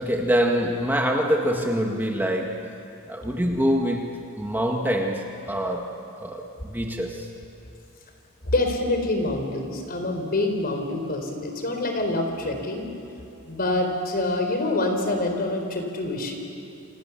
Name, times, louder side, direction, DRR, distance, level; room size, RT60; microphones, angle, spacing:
voice 1, 0.0-2.7 3.1-7.3, equal, 10° right, 1 dB, 1.8 m, -25 dB
voice 2, 8.5-12.9 13.5-16.3, left 2 dB, 45° left, 4 dB, 4.2 m, -26 dB
28.5 x 27.5 x 7.2 m, 2.7 s
head